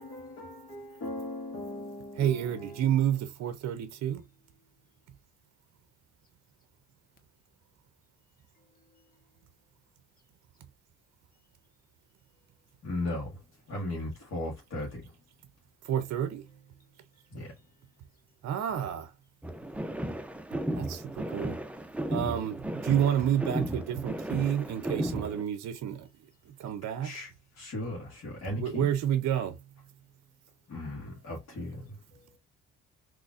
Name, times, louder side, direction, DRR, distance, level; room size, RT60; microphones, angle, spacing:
voice 1, 0.0-2.8 12.8-13.4 13.7-15.0 17.3-17.5 27.0-27.3 27.6-28.8 30.7-32.0, left 1 dB, 55° left, 1.7 m, -37 dB
voice 2, 2.1-4.3 15.8-16.5 18.4-19.1 20.7-21.6 22.1-26.1 26.5-27.1 28.5-29.6, right 10 dB, 60° right, 0.6 m, -29 dB
voice 3, 8.5-9.2 32.1-32.4, left 3 dB, 30° left, 1.4 m, -66 dB
sound 1, 19.4-25.4, right 1 dB, 5° right, 0.5 m, -35 dB
3.9 x 3.0 x 2.4 m
cardioid pair, 90°, 30 cm